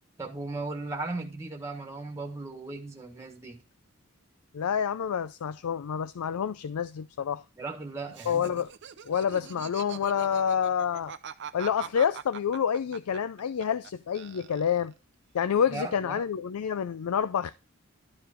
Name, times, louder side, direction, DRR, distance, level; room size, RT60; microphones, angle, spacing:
voice 1, 0.2-3.6 7.6-8.6 15.7-16.2, right 3 dB, 15° right, 1.5 m, -37 dB
voice 2, 4.5-7.4 8.3-8.7 9.0-11.1 11.5-14.9 15.3-17.5, left 8 dB, 90° left, 0.4 m, -28 dB
Laughter, 8.1-13.9 14.1-14.9, right 7 dB, 55° right, 0.6 m, -42 dB
12.0 x 4.7 x 5.0 m
head